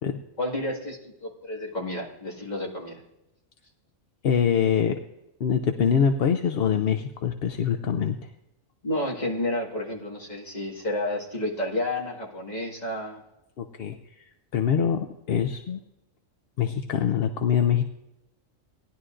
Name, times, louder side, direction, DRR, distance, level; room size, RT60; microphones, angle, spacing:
voice 1, 0.4-3.0 8.8-13.2, left 1 dB, 30° left, -1 dB, 2.0 m, -30 dB
voice 2, 4.2-5.0 5.4-8.2 13.6-15.8 16.6-17.8, left 7 dB, 60° left, 7 dB, 0.7 m, -24 dB
18.5 x 11.0 x 2.5 m, 0.92 s
omnidirectional pair, 1.4 m